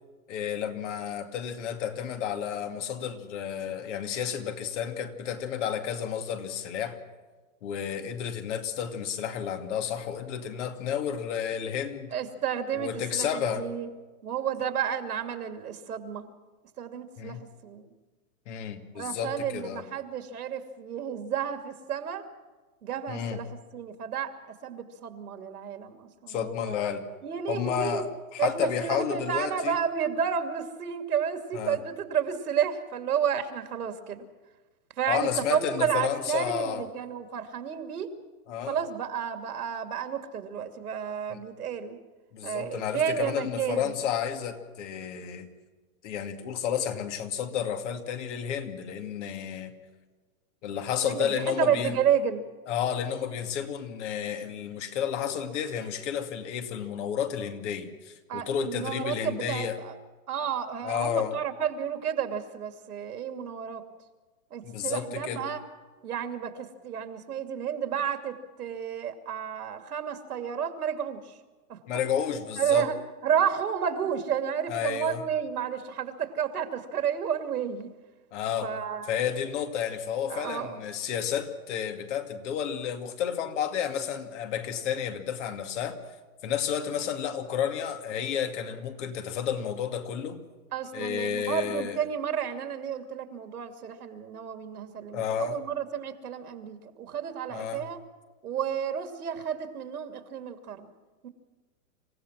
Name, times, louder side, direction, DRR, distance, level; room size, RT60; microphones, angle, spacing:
voice 1, 0.3-7.0 7.6-12.1 12.7-13.7 17.2-17.4 18.5-19.8 23.1-23.4 26.3-27.0 27.5-29.8 31.5-31.8 35.1-36.8 38.5-38.8 41.3-41.4 42.3-45.5 46.0-49.7 50.6-52.0 52.7-59.8 60.8-61.3 64.6-65.4 71.9-72.9 74.7-75.2 78.3-78.7 79.1-86.0 86.4-90.4 90.9-92.0 95.1-95.6 97.5-97.8, left 8 dB, 50° left, 6 dB, 2.6 m, -31 dB
voice 2, 12.1-13.9 14.2-16.3 16.8-17.4 17.6-17.9 18.9-22.2 22.8-23.5 23.7-24.3 24.6-26.8 27.2-28.0 28.4-34.2 35.0-38.1 38.6-42.0 42.4-44.0 51.0-52.5 58.3-60.0 60.3-63.8 64.5-65.6 66.0-71.2 71.7-71.8 72.6-72.9 73.2-77.9 78.6-79.2 80.3-80.8 90.7-98.0 98.4-100.9 101.2-101.3, right 8 dB, 80° right, 7 dB, 2.7 m, -31 dB
27.0 x 16.0 x 6.1 m, 1.3 s
hypercardioid pair, 140°, 45 cm